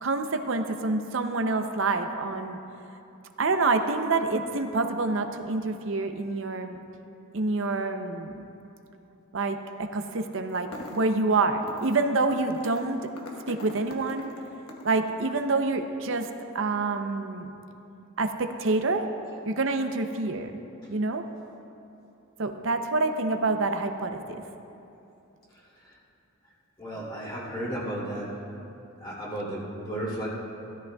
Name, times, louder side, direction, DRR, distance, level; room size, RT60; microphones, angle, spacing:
voice 1, 0.0-2.6 3.4-6.8 7.3-8.4 9.3-13.0 13.5-14.3 14.8-16.3 16.5-17.5 18.2-19.1 19.5-20.6 20.9-21.3 22.4-24.4, right 3 dB, 65° right, 7 dB, 0.6 m, -27 dB
sound 1, 10.5-11.2 11.6-12.0 12.3-15.0, left 1 dB, 80° left, 1.2 m, -43 dB
voice 2, 26.8-28.3 29.0-30.3, right 1 dB, 20° left, -7 dB, 2.8 m, -34 dB
16.5 x 13.0 x 2.3 m, 2.8 s
head